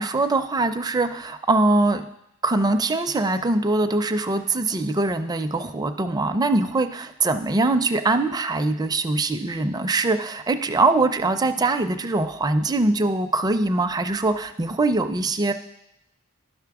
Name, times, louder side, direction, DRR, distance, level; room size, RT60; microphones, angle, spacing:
voice 1, 0.0-2.0 2.4-15.5, right 2 dB, 20° right, 8 dB, 0.4 m, -22 dB
12.0 x 5.8 x 3.5 m, 0.83 s
head